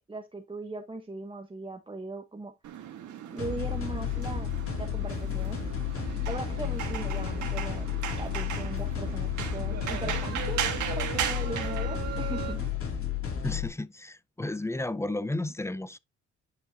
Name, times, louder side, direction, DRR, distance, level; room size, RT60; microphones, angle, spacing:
voice 1, 0.1-2.5 3.3-4.5 4.8-5.6 6.3-7.8 8.1-12.6, right 3 dB, 15° right, 1.1 m, -39 dB
sound 1, 2.6-12.7, right 9 dB, 75° right, 1.6 m, -37 dB
sound 2, 3.4-13.7, left 9 dB, 45° left, 2.8 m, -32 dB
sound 3, 5.9-8.4 8.7-9.2 9.5-12.5, right 9 dB, 55° right, 2.1 m, -41 dB
voice 2, 13.4-16.0, left 2 dB, 10° left, 0.4 m, -33 dB
9.3 x 5.4 x 2.8 m
cardioid pair, 90°, 30 cm